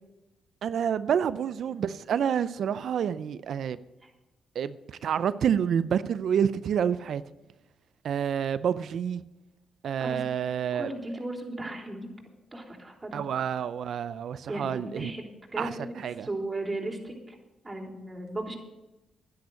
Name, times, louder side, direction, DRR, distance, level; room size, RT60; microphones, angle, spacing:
voice 1, 0.6-3.8 4.5-7.2 8.0-9.2 9.8-10.9 13.1-15.1 15.6-16.3, right 8 dB, 70° right, 15 dB, 0.5 m, -28 dB
voice 2, 10.7-12.1 12.5-13.2 14.5-15.2 15.5-17.4 17.6-18.6, right 2 dB, 25° right, 1 dB, 3.6 m, -36 dB
11.5 x 10.5 x 6.5 m, 1.0 s
supercardioid pair, 60°, 0 cm